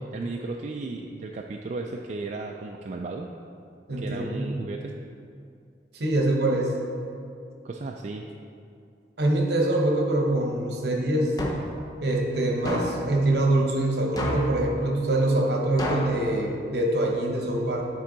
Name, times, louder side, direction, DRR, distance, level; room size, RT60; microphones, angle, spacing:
voice 1, 0.1-3.3 4.0-5.0 7.6-8.2, right 3 dB, 40° right, 1 dB, 0.3 m, -34 dB
voice 2, 3.9-4.5 5.9-6.7 9.2-11.3 12.0-17.8, right 1 dB, 65° right, 1 dB, 0.9 m, -24 dB
sound 1, 11.4-11.8 12.6-13.1 14.2-14.6 15.8-16.2, left 1 dB, 20° left, 0.7 m, -29 dB
8.9 x 4.5 x 3.9 m, 2.4 s
head